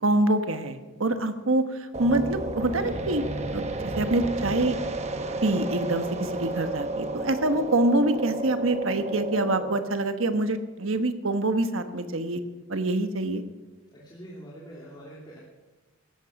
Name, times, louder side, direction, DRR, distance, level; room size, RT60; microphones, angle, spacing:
voice 1, 0.0-3.2 3.5-3.6 4.0-4.8 5.4-12.4 12.7-13.4, right 2 dB, 90° right, 8 dB, 1.2 m, -25 dB
sound 1, 1.9-9.8, right 2 dB, 35° right, 1.1 m, -32 dB
voice 2, 13.9-15.4, right 1 dB, 25° left, -6 dB, 2.8 m, -44 dB
16.0 x 13.0 x 5.9 m, 1.2 s
head